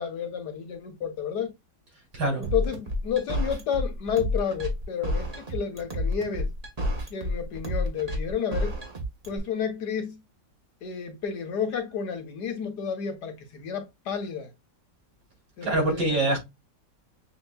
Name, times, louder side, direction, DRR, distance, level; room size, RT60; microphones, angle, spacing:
voice 1, 0.0-1.5 2.4-6.5 7.1-8.8 9.3-10.2 10.8-14.5 15.6-16.3, left 7 dB, 70° left, 1.7 m, -31 dB
voice 2, 2.1-2.4 15.6-16.4, right 2 dB, 90° right, 3.7 m, -24 dB
sound 1, 2.4-9.4, left 1 dB, 25° right, 1.1 m, -29 dB
6.8 x 3.0 x 2.2 m
omnidirectional pair, 1.9 m